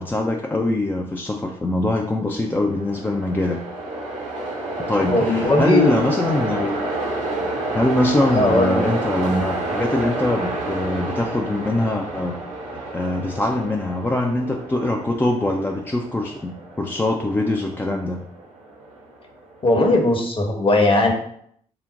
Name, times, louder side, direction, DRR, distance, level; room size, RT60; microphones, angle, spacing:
voice 1, 0.0-3.6 4.8-6.7 7.4-12.4 12.7-18.2, left 2 dB, 10° left, 1 dB, 0.4 m, -23 dB
Train, 2.5-19.7, right 2 dB, 75° right, 0.9 m, -29 dB
voice 2, 5.0-6.0 8.3-8.8 19.6-21.1, left 2 dB, 30° left, 2 dB, 0.9 m, -19 dB
3.8 x 2.1 x 3.9 m, 0.67 s
figure-of-eight pair, 45°, 19 cm